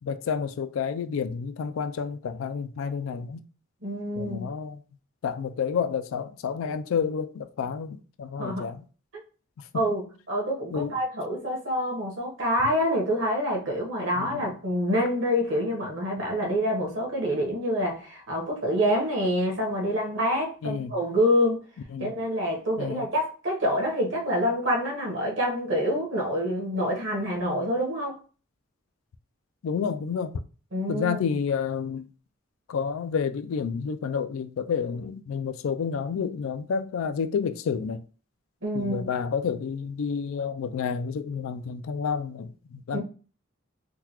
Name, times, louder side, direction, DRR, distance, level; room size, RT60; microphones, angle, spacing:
voice 1, 0.0-3.4 4.2-4.8 5.2-8.8 10.7-11.0 14.2-14.4 20.6-20.9 21.9-22.1 22.8-23.1 29.6-30.3 30.9-32.1 32.7-38.0 38.7-43.0, left 6 dB, 75° left, 0.3 m, -30 dB
voice 2, 3.8-4.5 8.4-8.7 9.1-9.2 9.7-21.6 22.0-28.2 30.7-31.2 38.6-39.1 42.9-43.0, equal, 65° right, 1.1 m, -27 dB
3.8 x 2.3 x 2.9 m
head